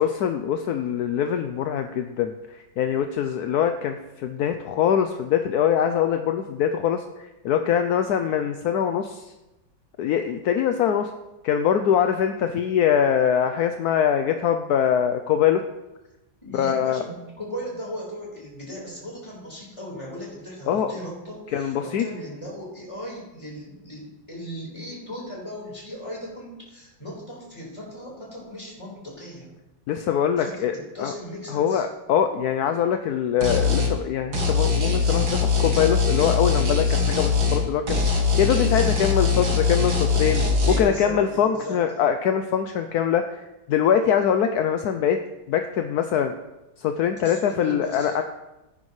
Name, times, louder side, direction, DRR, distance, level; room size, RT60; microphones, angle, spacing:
voice 1, 0.0-9.3 10.0-11.1 11.4-15.6 16.5-17.0 20.7-20.9 21.5-22.0 29.9-31.1 31.5-45.2 45.5-46.3 46.8-48.2, left 8 dB, 70° left, 7 dB, 1.0 m, -23 dB
voice 2, 16.4-29.5 30.4-31.9 40.8-42.0 47.2-48.2, equal, 15° left, -4 dB, 4.5 m, -37 dB
sound 1, 33.4-33.9 34.3-37.6 37.9-40.8, left 4 dB, 80° right, 2.8 m, -22 dB
16.5 x 9.6 x 3.2 m, 1.0 s
omnidirectional pair, 2.1 m